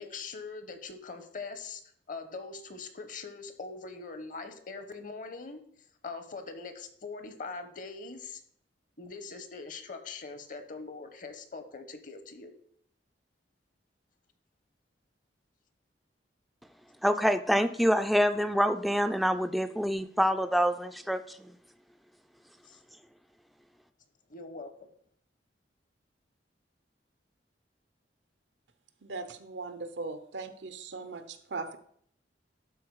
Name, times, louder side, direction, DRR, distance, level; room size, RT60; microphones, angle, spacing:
voice 1, 0.0-1.8 2.1-5.6 6.0-8.4 9.0-12.5 22.6-22.8 24.3-24.9, left 4 dB, 50° left, 0.9 m, -42 dB
voice 2, 17.0-21.5, equal, ahead, 0.3 m, -26 dB
voice 3, 29.0-31.8, right 3 dB, 90° right, 0.8 m, -39 dB
12.0 x 4.4 x 4.7 m
head